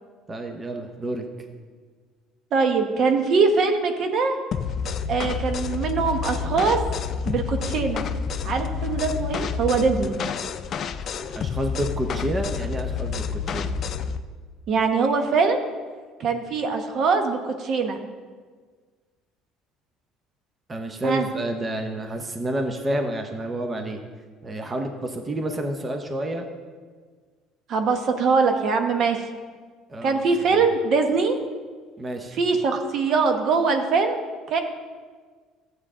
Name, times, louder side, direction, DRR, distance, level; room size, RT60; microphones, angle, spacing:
voice 1, 0.3-1.2 11.3-13.7 20.7-24.0 24.4-26.5 29.9-30.2 30.5-30.7 32.0-32.4, right 1 dB, 20° right, 5 dB, 0.9 m, -29 dB
voice 2, 2.5-4.4 5.1-6.8 7.2-8.1 8.4-10.2 14.7-15.7 16.2-18.0 21.0-21.3 27.7-29.2 30.0-31.4 32.3-34.6, right 4 dB, 50° right, 6 dB, 1.0 m, -22 dB
sound 1, 4.5-14.2, left 6 dB, 45° left, 0.5 m, -29 dB
13.0 x 8.0 x 3.7 m, 1.5 s
cardioid pair, 115°, 0 cm